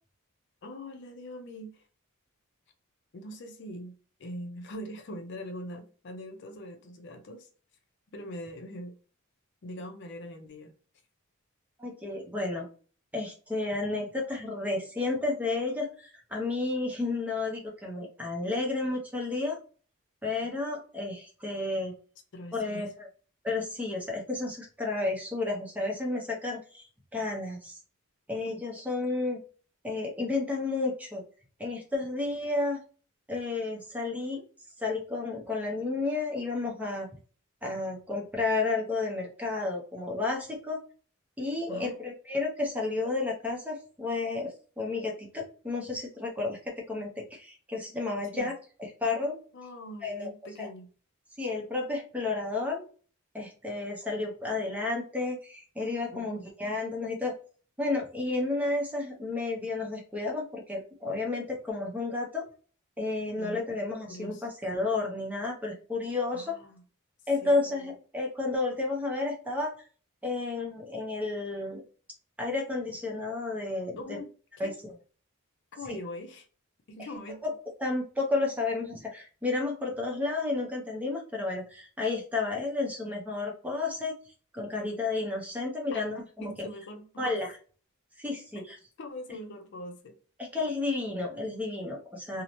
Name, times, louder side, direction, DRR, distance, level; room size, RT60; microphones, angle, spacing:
voice 1, 0.6-1.8 3.1-7.5 8.1-8.9 9.6-10.7 22.3-22.8 41.7-41.9 48.3-48.5 49.5-50.9 56.1-56.4 63.4-63.6 64.1-64.5 66.3-66.8 67.4-67.9 74.0-74.3 74.6-74.7 75.7-76.5 76.9-77.4 85.9-86.0 86.4-87.4 89.0-90.2, left 1 dB, 55° left, 0.4 m, -42 dB
voice 2, 11.8-12.7 13.1-19.6 20.2-21.9 22.5-23.1 23.4-26.8 27.1-27.8 28.3-29.4 29.8-31.2 31.6-32.8 33.3-34.4 34.8-37.1 37.6-40.8 41.4-46.6 46.9-48.5 49.0-49.4 50.0-50.3 50.6-50.7 51.4-52.8 53.3-57.3 57.8-62.4 63.0-66.6 67.3-69.7 70.2-71.8 72.4-74.2 74.6-74.9 75.9-76.0 77.0-77.1 77.4-77.5 77.8-84.1 84.5-86.5 87.2-87.5 88.2-88.8 90.4-92.4, left 3 dB, 5° right, 0.6 m, -31 dB
2.7 x 2.1 x 2.9 m
head